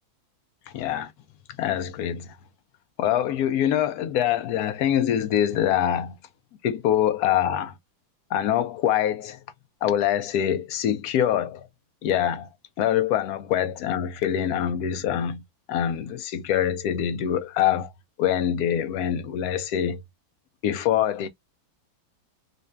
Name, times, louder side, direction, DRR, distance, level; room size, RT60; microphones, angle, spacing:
voice 1, 0.7-1.1 1.6-2.3 3.0-6.1 6.6-7.7 8.3-9.4 9.8-11.7 12.0-12.5 12.8-15.4 15.7-17.9 18.2-20.0 20.6-21.3, left 10 dB, 70° left, 0.9 m, -24 dB
4.0 x 2.2 x 3.2 m
omnidirectional pair, 2.1 m